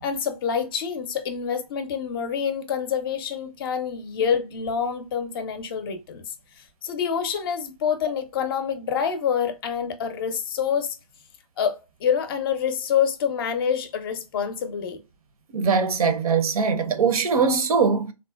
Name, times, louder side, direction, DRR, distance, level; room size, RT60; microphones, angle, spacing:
voice 1, 0.0-6.2 6.6-11.0 11.6-15.0, left 7 dB, 35° left, 0.5 m, -27 dB
voice 2, 15.5-18.1, right 5 dB, 65° right, 0.6 m, -21 dB
3.7 x 2.1 x 2.3 m
hypercardioid pair, 135°, 20 cm